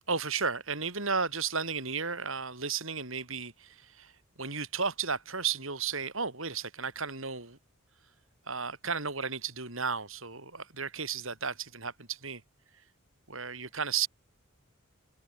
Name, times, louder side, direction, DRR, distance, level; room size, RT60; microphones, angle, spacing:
voice 1, 0.1-4.1 4.4-7.6 8.5-12.4 13.3-14.1, right 5 dB, 65° right, 6.5 m, -33 dB
head